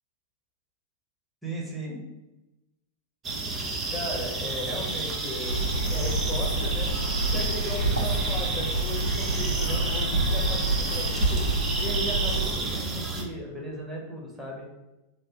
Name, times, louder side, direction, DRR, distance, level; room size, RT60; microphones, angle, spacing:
voice 1, 1.4-2.0 3.6-6.9 7.3-14.7, left 1 dB, ahead, -4 dB, 1.2 m, -36 dB
sound 1, 3.2-13.2, right 3 dB, 25° right, 0.7 m, -31 dB
sound 2, 5.5-12.5, right 2 dB, 90° left, 0.5 m, -28 dB
3.3 x 2.6 x 4.4 m, 0.99 s
figure-of-eight pair, 90°, 0 cm